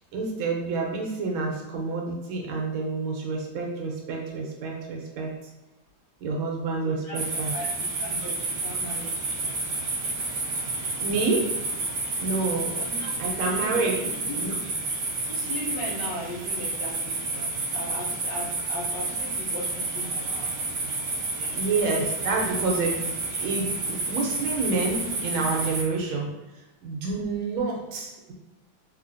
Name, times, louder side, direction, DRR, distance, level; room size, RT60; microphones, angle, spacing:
voice 1, 0.1-5.3 6.2-7.5 11.0-11.5 12.2-12.7 13.2-13.9 14.3-14.5 21.5-23.1 23.4-26.3 26.8-28.3, right 3 dB, 80° right, 0 dB, 1.6 m, -28 dB
voice 2, 6.9-7.2 7.5-9.6 12.7-13.1 13.6-14.4 15.3-20.3 21.3-21.6, equal, 65° left, -3 dB, 1.2 m, -38 dB
sound 1, 7.1-25.8, right 3 dB, 55° right, 1.1 m, -30 dB
3.9 x 3.1 x 2.6 m, 1.1 s
omnidirectional pair, 2.3 m